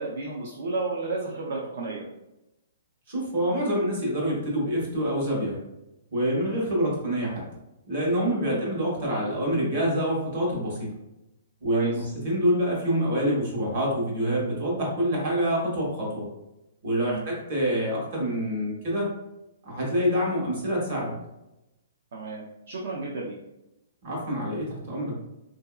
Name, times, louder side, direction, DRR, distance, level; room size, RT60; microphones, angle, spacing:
voice 1, 0.0-2.0 8.4-8.6 11.7-12.1 17.0-17.2 22.1-23.3, right 3 dB, 60° right, -3 dB, 0.6 m, -32 dB
voice 2, 3.1-5.6 6.1-7.4 7.9-10.9 11.6-16.3 16.8-19.1 19.6-21.1 24.0-25.2, equal, 40° right, -3 dB, 1.2 m, -26 dB
3.8 x 2.6 x 2.3 m, 0.92 s
hypercardioid pair, 175°, 0 cm